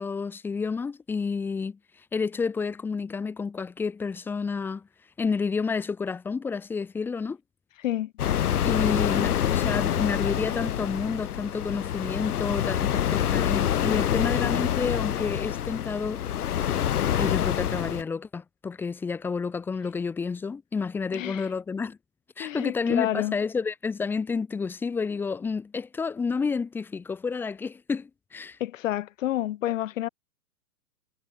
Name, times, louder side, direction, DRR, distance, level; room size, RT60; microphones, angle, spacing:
voice 1, 0.0-1.8 2.1-4.9 5.2-7.4 8.6-16.2 17.2-22.0 22.4-28.6, left 5 dB, 5° left, 0.8 m, -30 dB
sound 1, 8.2-18.0, left 10 dB, 70° left, 3.7 m, -26 dB
voice 2, 21.1-21.5 22.4-23.4 28.6-30.1, left 13 dB, 55° left, 2.8 m, -29 dB
hypercardioid pair, 160°, 47 cm